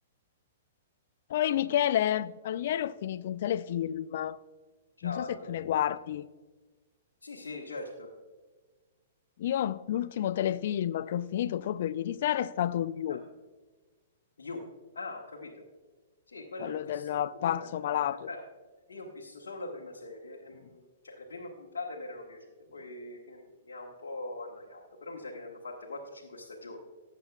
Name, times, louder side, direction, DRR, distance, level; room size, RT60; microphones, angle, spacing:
voice 1, 1.3-4.4 5.0-6.3 9.4-13.2 16.6-18.3, left 11 dB, 55° left, 0.4 m, -30 dB
voice 2, 5.0-5.5 7.2-8.1 14.4-14.7 14.9-15.6 16.3-18.5 18.9-22.4 22.7-26.8, left 2 dB, 75° left, 1.4 m, -42 dB
18.0 x 8.3 x 2.3 m
figure-of-eight pair, 110°, 0 cm